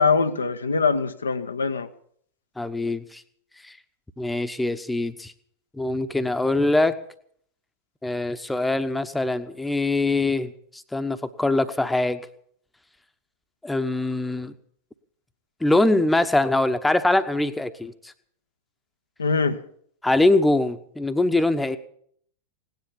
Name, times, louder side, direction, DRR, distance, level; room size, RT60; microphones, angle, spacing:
voice 1, 0.0-1.9 19.2-19.6, left 4 dB, 75° left, 1.0 m, -22 dB
voice 2, 2.6-3.2 4.2-5.3 5.7-6.9 8.0-12.2 13.6-14.5 15.6-17.9 20.0-21.8, left 2 dB, 5° left, 1.1 m, -23 dB
18.0 x 10.5 x 7.3 m
figure-of-eight pair, 90°, 0 cm